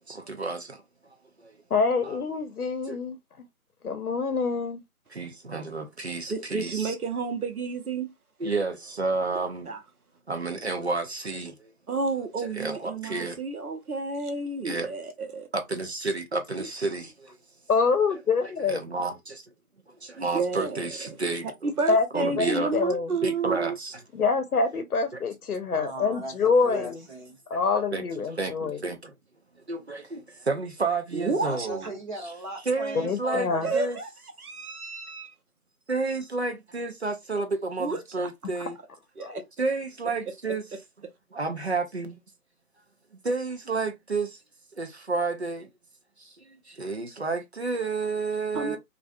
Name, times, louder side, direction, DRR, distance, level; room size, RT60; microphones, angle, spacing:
voice 1, 0.1-0.8 1.4-1.6 2.0-2.2 2.9-3.0 5.1-6.9 8.4-9.7 10.3-11.7 12.5-13.4 14.6-14.9 15.5-17.4 18.4-19.5 19.9-21.7 22.1-22.7 23.2-24.0 26.7-26.8 27.6-29.1 29.7-31.9 32.7-34.0 35.9-38.8 39.6-40.6 41.3-42.2 43.2-44.4 44.8-45.7 46.2-48.8, right 3 dB, 50° right, 0.5 m, -31 dB
voice 2, 1.7-3.2 3.8-4.8 17.7-18.8 21.9-23.1 24.1-26.9 27.5-28.8 33.0-33.7, left 4 dB, 90° left, 0.7 m, -25 dB
voice 3, 6.3-8.1 9.7-9.8 11.9-15.5 20.2-20.8 21.6-23.8 31.1-31.7 33.6-34.1 34.4-35.3 37.8-38.3 39.2-39.4 48.5-48.8, right 4 dB, 80° right, 0.8 m, -30 dB
voice 4, 25.7-27.4 31.4-34.0 48.7-48.8, right 1 dB, 35° right, 1.2 m, -38 dB
2.4 x 2.2 x 2.4 m
figure-of-eight pair, 165°, 44 cm